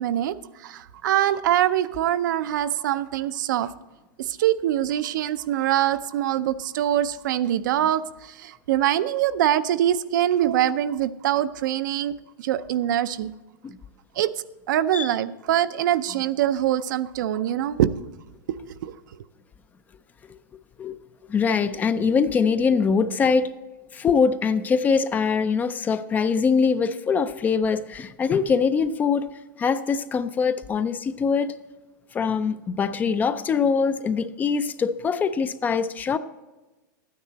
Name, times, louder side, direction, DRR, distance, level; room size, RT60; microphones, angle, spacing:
voice 1, 0.0-3.7 4.2-12.1 12.4-13.3 14.2-14.3 14.7-17.9 18.5-18.9, right 12 dB, 65° right, 13 dB, 0.5 m, -24 dB
voice 2, 21.3-23.5 23.9-29.3 29.6-31.6 32.1-36.2, left 5 dB, 15° left, 13 dB, 0.3 m, -23 dB
12.0 x 9.6 x 4.0 m, 1.1 s
supercardioid pair, 145°, 11 cm